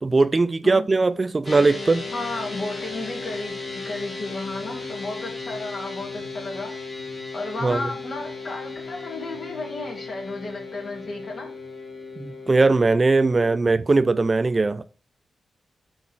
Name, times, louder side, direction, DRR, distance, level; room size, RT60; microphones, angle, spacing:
voice 1, 0.0-2.0 7.6-7.8 12.2-14.8, right 3 dB, 35° right, 0.4 m, -20 dB
sound 1, 1.4-13.6, left 3 dB, 35° left, 2.6 m, -36 dB
voice 2, 2.1-6.7 7.3-11.5, left 2 dB, 55° left, 2.8 m, -33 dB
6.0 x 3.8 x 6.1 m
cardioid pair, 65°, 0 cm